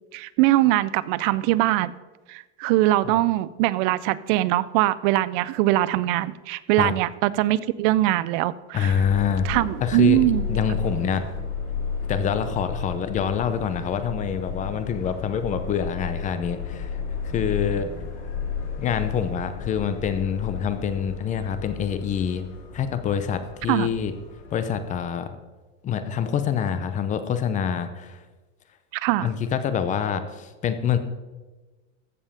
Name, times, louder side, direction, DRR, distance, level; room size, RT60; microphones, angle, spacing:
voice 1, 0.1-1.9 2.3-9.0 9.4-10.4 23.7-23.9 28.9-29.3, right 15 dB, 45° right, 18 dB, 0.4 m, -22 dB
voice 2, 8.7-9.5 9.8-10.2 10.5-11.2 12.1-17.9 18.8-22.4 22.7-24.1 24.5-25.3 25.8-28.2 29.2-31.0, left 8 dB, 20° left, 11 dB, 0.7 m, -26 dB
Subway metro underground, 8.9-25.0, left 5 dB, 70° left, 4.0 m, -33 dB
14.5 x 5.5 x 6.7 m, 1.2 s
supercardioid pair, 160°, 36 cm